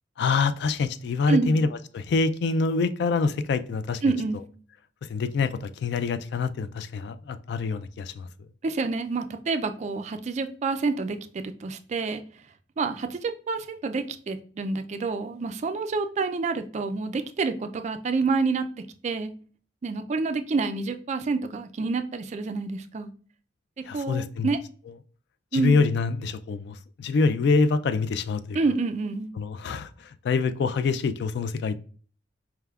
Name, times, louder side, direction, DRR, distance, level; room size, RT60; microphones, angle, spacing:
voice 1, 0.2-1.7 1.9-4.0 5.1-8.3 23.8-24.5 25.5-28.6 29.4-31.8, left 4 dB, 65° left, 0.3 m, -25 dB
voice 2, 1.3-1.6 4.0-4.5 8.6-12.2 12.8-18.7 19.0-19.3 19.8-23.1 23.8-24.6 25.5-25.8 28.5-29.3, right 4 dB, 40° right, 0.3 m, -28 dB
4.6 x 3.4 x 2.3 m
head